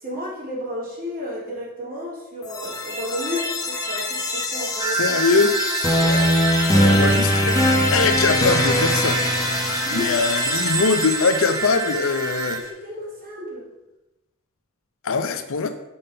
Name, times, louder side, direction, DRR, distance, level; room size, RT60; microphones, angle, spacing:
voice 1, 0.0-5.2 6.0-6.3 6.7-7.2 9.8-10.2 12.6-13.7, left 1 dB, 45° right, -4 dB, 2.7 m, -32 dB
sound 1, 2.4-12.4, left 1 dB, 15° left, 1.1 m, -22 dB
sound 2, 4.8-12.6, right 5 dB, 20° right, 0.6 m, -28 dB
voice 2, 5.0-5.5 6.8-7.6 7.9-9.2 9.9-12.6 15.0-15.7, left 4 dB, 65° left, 8 dB, 0.6 m, -22 dB
5.7 x 5.5 x 5.5 m, 0.95 s
head